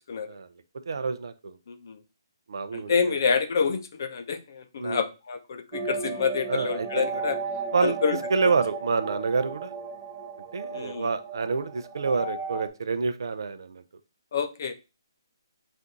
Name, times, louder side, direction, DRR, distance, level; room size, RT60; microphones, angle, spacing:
voice 1, 0.9-1.6 2.5-3.2 4.8-5.1 6.5-7.2 7.7-9.7 10.5-13.8, right 4 dB, 65° right, 11 dB, 0.5 m, -28 dB
voice 2, 2.7-4.4 4.7-7.4 7.8-8.2 10.7-11.1 14.3-14.7, left 6 dB, 50° left, 9 dB, 0.6 m, -27 dB
sound 1, 5.7-12.7, right 4 dB, 20° right, 0.7 m, -35 dB
4.3 x 2.6 x 3.8 m, 0.29 s
hypercardioid pair, 160°, 2 cm